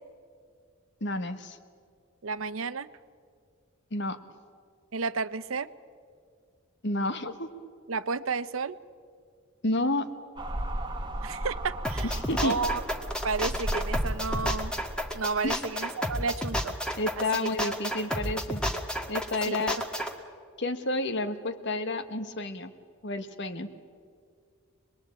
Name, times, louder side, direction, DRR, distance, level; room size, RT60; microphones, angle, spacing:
voice 1, 1.0-1.6 3.9-4.2 6.8-7.5 9.6-10.1 12.0-12.6 15.4-15.6 17.0-18.6 19.1-19.8 20.6-22.7 23.0-23.7, left 2 dB, 55° left, 10 dB, 1.5 m, -30 dB
voice 2, 2.2-2.9 4.9-5.7 7.9-8.8 11.2-12.8 13.2-14.7 15.1-16.8 17.2-17.7 19.5-19.7 19.9-20.0, right 4 dB, 75° right, 15 dB, 0.8 m, -32 dB
sound 1, 10.4-15.6, right 1 dB, 20° right, 1.4 m, -35 dB
sound 2, 11.8-20.1, equal, 5° left, 1.8 m, -31 dB
25.5 x 21.0 x 8.8 m, 2.1 s
head